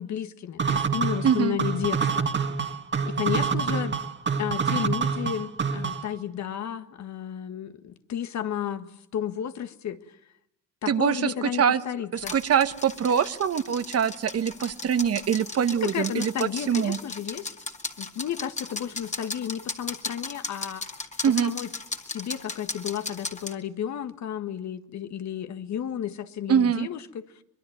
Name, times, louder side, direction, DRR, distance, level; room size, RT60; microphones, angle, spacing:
voice 1, 0.0-2.3 3.0-3.9 4.4-10.0 10.8-12.3 15.8-17.5 18.0-20.8 21.4-21.7 22.1-27.2, left 9 dB, 65° left, 10 dB, 1.7 m, -32 dB
sound 1, 0.6-6.2, right 5 dB, 40° right, 2.0 m, -27 dB
voice 2, 1.2-1.6 10.9-11.8 12.1-17.0 21.2-21.5 26.5-26.9, right 8 dB, 55° right, 12 dB, 1.4 m, -24 dB
sound 2, 12.2-23.5, left 3 dB, 25° left, 2.2 m, -37 dB
24.5 x 22.0 x 9.3 m, 0.79 s
cardioid pair, 90°, 30 cm